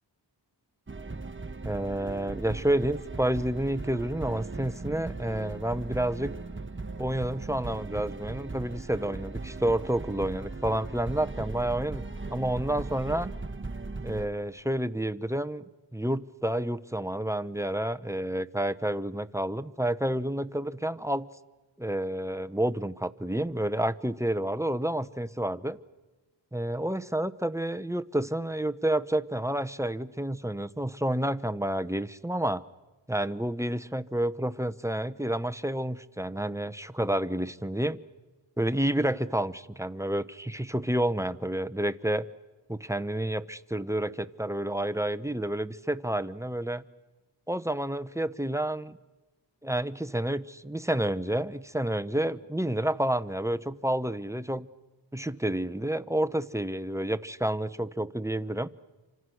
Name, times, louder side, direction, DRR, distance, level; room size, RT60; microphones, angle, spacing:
sound 1, 0.9-14.3, right 3 dB, 25° right, 1.3 m, -38 dB
voice 1, 1.6-6.3 7.0-12.0 12.3-13.3 14.0-15.6 15.9-21.3 21.8-25.8 26.5-32.6 33.1-38.0 38.6-42.3 42.7-46.8 47.5-49.0 49.6-54.7 55.1-58.7, right 1 dB, 5° right, 12 dB, 0.8 m, -29 dB
29.5 x 25.5 x 6.3 m, 1.2 s
wide cardioid pair, 50°, 46 cm